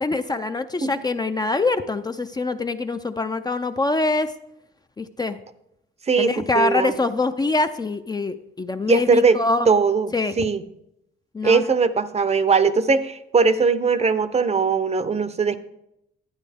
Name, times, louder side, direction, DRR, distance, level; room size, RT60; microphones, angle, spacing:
voice 1, 0.0-4.3 5.0-5.4 6.2-9.7 10.1-10.5 11.3-11.7, left 3 dB, 20° left, 9 dB, 0.4 m, -24 dB
voice 2, 6.1-6.9 8.9-9.4 9.7-10.1 10.4-10.6 11.4-15.6, right 5 dB, 35° right, 13 dB, 0.6 m, -20 dB
11.5 x 9.2 x 3.5 m, 0.82 s
cardioid pair, 90°, 20 cm